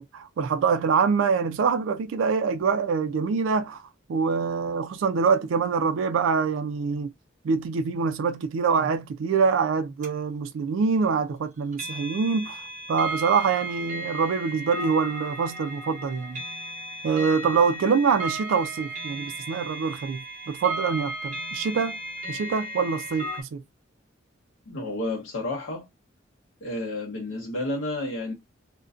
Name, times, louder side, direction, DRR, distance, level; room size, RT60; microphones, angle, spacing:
voice 1, 0.0-3.8 4.1-7.1 7.4-16.4 17.0-22.0 22.3-23.6, right 5 dB, 85° right, 0.3 m, -25 dB
sound 1, 10.0-10.1 11.7-23.4, right 1 dB, 40° right, 0.8 m, -35 dB
voice 2, 24.7-25.9 26.6-28.3, left 2 dB, 85° left, 0.7 m, -31 dB
2.5 x 2.1 x 2.3 m
head